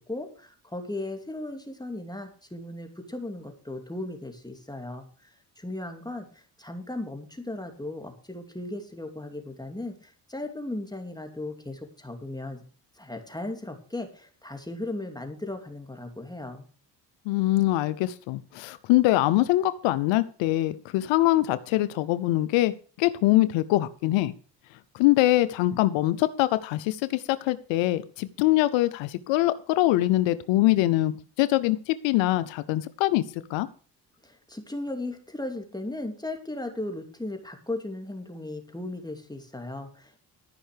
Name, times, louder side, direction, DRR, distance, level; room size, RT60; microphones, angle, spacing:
voice 1, 0.0-5.3 5.6-12.6 13.0-16.6 34.2-40.2, left 2 dB, 10° left, 5 dB, 2.5 m, -36 dB
voice 2, 17.3-22.7 23.0-24.3 24.9-33.2 33.5-33.7, left 16 dB, 85° left, 15 dB, 0.7 m, -23 dB
13.5 x 5.6 x 6.7 m, 0.40 s
supercardioid pair, 65°, 44 cm